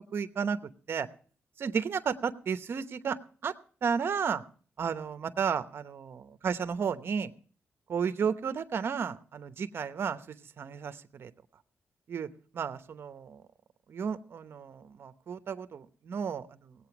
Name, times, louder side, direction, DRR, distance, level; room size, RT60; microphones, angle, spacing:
voice 1, 0.1-0.6 0.9-1.1 1.6-3.2 3.4-3.5 3.8-4.4 4.8-7.3 7.9-11.3 12.1-12.3 12.5-13.4 13.9-16.7, right 6 dB, 60° right, 11 dB, 0.9 m, -33 dB
18.0 x 8.6 x 5.9 m, 0.43 s
cardioid pair, 110°, 5 cm